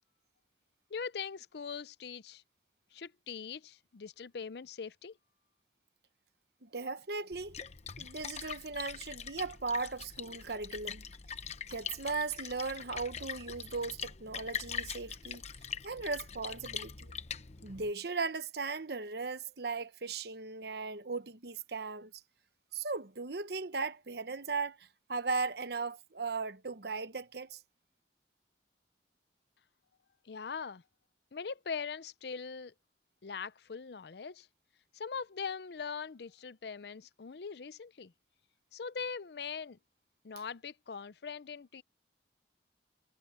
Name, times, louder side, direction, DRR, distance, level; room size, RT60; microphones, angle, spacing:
voice 1, 0.9-2.4 2.9-5.1 30.3-30.8 31.3-32.7 33.2-34.5 34.9-38.1 38.7-39.8 40.2-41.8, left 5 dB, 60° left, 0.5 m, -41 dB
voice 2, 6.6-7.6 8.0-11.0 11.7-15.4 15.8-17.1 17.6-22.1 22.7-27.6, right 4 dB, 60° right, 1.1 m, -37 dB
Splash splatter, 7.3-17.9, left 7 dB, 35° left, 0.9 m, -43 dB
head